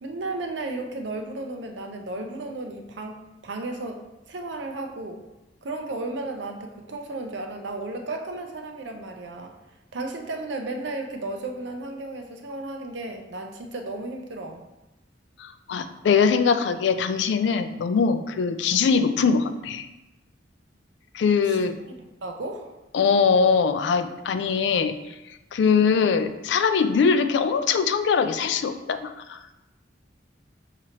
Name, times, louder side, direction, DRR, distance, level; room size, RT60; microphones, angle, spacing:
voice 1, 0.0-3.2 3.4-4.0 4.3-5.2 5.6-9.5 9.9-14.6 21.4-21.7 22.0-22.8, right 2 dB, 70° right, 3 dB, 0.6 m, -34 dB
voice 2, 15.4-19.9 21.1-21.7 22.9-24.9 25.5-29.4, left 5 dB, 65° left, 10 dB, 0.3 m, -22 dB
6.1 x 2.9 x 2.9 m, 1.0 s
head